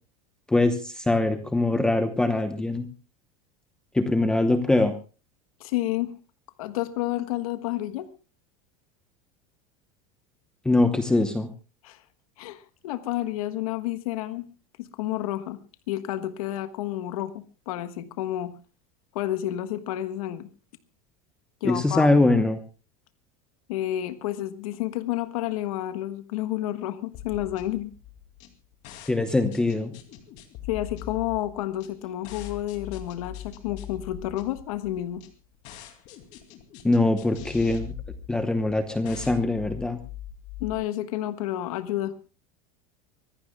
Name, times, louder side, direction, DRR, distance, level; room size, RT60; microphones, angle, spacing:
voice 1, 0.5-2.9 3.9-4.9 10.6-11.5 21.6-22.6 29.1-29.9 36.8-37.9 38.3-40.0, left 2 dB, 5° left, 8 dB, 0.9 m, -22 dB
voice 2, 5.6-6.1 6.6-8.1 11.8-12.0 12.4-14.5 14.8-15.6 15.9-18.5 19.1-20.5 21.6-22.3 23.7-27.9 30.7-35.2 40.6-42.3, left 14 dB, 80° left, 10 dB, 1.4 m, -30 dB
sound 1, 27.1-40.7, left 10 dB, 40° left, 2.5 m, -42 dB
24.5 x 18.0 x 2.3 m, 0.34 s
supercardioid pair, 175°, 18 cm